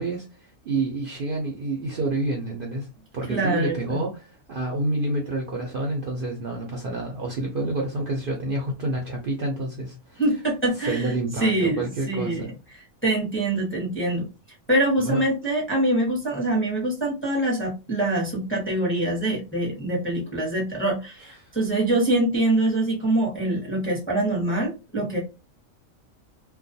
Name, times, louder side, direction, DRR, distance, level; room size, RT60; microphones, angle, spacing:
voice 1, 0.0-2.9 3.1-10.2 10.7-12.5 15.0-15.2 21.4-21.5, right 2 dB, 55° right, 0.6 m, -28 dB
voice 2, 3.3-4.0 10.2-11.1 11.4-12.5 13.0-14.3 14.7-25.2, right 1 dB, 10° left, 0.6 m, -24 dB
2.3 x 2.2 x 2.6 m
omnidirectional pair, 1.4 m